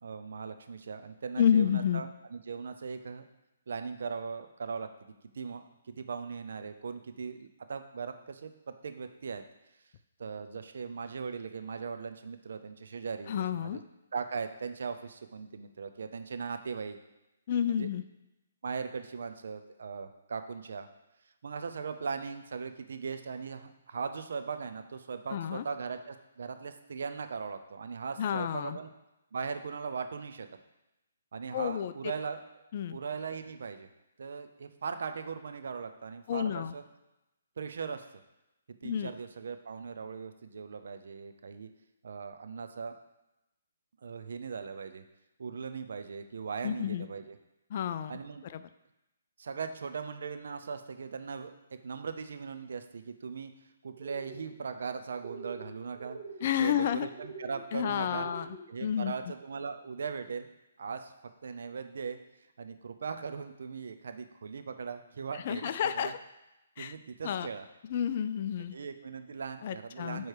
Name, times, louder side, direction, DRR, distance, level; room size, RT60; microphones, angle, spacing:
voice 1, 0.0-3.2 3.7-5.6 6.0-8.5 8.8-9.4 10.2-13.8 14.1-17.0 17.7-17.9 18.6-20.9 21.4-28.9 29.3-30.5 31.3-32.4 32.9-33.9 34.2-36.8 37.6-38.0 38.8-41.7 42.0-42.9 44.0-45.0 45.4-47.4 48.1-48.4 49.4-51.5 51.8-53.5 53.8-56.2 56.6-58.3 58.7-60.5 60.8-61.1 61.4-62.2 62.6-66.1 66.8-67.7 68.7-70.3, right 5 dB, 70° right, 8 dB, 0.6 m, -39 dB
voice 2, 1.4-2.0 13.3-13.8 17.5-18.0 25.3-25.6 28.2-28.8 31.5-31.9 32.7-33.0 36.3-36.7 38.8-39.1 46.6-47.1 47.7-48.6 56.4-57.1 57.7-58.5 58.8-59.1 65.5-66.2 66.8-66.9 67.2-67.5 67.9-68.8 69.6-70.3, left 9 dB, 45° left, 12 dB, 0.4 m, -30 dB
sound 1, 54.0-54.5 55.2-55.7 55.9-56.4 57.1-57.6 58.1-58.6, right 3 dB, 40° right, 1.0 m, -44 dB
8.8 x 3.2 x 4.8 m, 0.94 s
hypercardioid pair, 145°, 0 cm